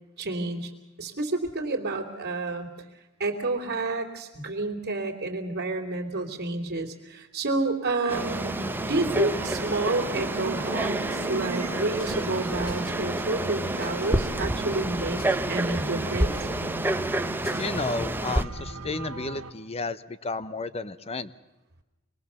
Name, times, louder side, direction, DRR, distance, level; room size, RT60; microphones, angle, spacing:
voice 1, 0.2-0.7 1.0-2.7 3.2-8.6 8.9-15.2 15.5-16.5, right 2 dB, 50° right, 3 dB, 3.0 m, -29 dB
Frog, 8.1-18.4, right 1 dB, 10° right, 0.8 m, -29 dB
sound 1, 8.2-19.5, right 2 dB, 75° right, 1.5 m, -38 dB
sound 2, 10.1-17.7, left 1 dB, 45° left, 7.5 m, -51 dB
voice 2, 17.6-21.3, left 3 dB, 30° left, 15 dB, 0.7 m, -32 dB
25.5 x 21.0 x 6.9 m, 1.0 s
head